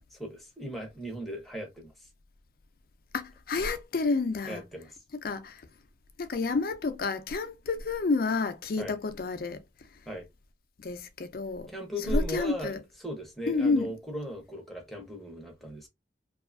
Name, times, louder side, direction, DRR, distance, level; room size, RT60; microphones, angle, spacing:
voice 1, 0.1-1.9 4.4-4.9 8.8-9.0 10.1-10.3 11.7-12.7 13.0-15.9, equal, ahead, 0.7 m, -38 dB
voice 2, 3.1-4.6 5.2-5.6 6.2-9.6 10.8-11.7 12.1-12.8 13.5-13.9, left 3 dB, 50° left, 0.4 m, -29 dB
2.6 x 2.4 x 2.4 m
head